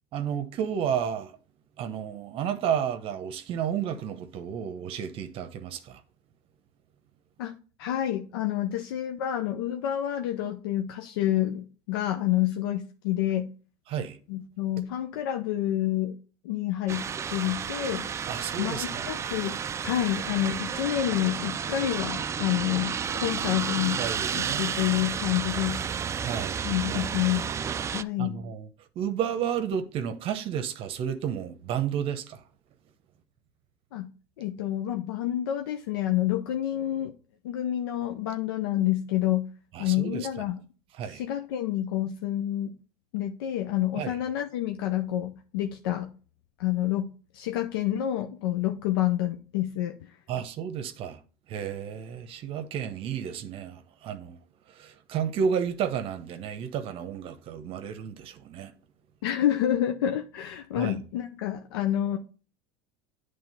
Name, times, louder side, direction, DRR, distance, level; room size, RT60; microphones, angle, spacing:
voice 1, 0.1-1.4 1.8-6.0 13.9-14.2 18.3-19.0 24.0-24.7 26.2-26.6 26.9-27.1 28.2-28.7 29.0-32.4 39.7-40.3 41.0-41.2 44.0-44.2 50.3-51.2 51.5-54.4 54.7-58.7 60.8-61.0, right 8 dB, 50° right, 0.9 m, -32 dB
voice 2, 7.8-13.5 14.3-16.2 16.4-17.1 17.3-18.1 18.6-19.6 19.8-24.0 24.3-25.8 26.6-27.5 27.9-28.4 33.9-34.1 34.4-37.1 37.4-39.5 39.8-40.6 41.0-42.7 43.1-46.1 46.6-50.2 59.2-62.2, left 12 dB, 90° left, 0.6 m, -28 dB
sound 1, 16.9-28.0, right 7 dB, 25° right, 0.3 m, -32 dB
8.8 x 3.4 x 5.5 m
supercardioid pair, 110°, 12 cm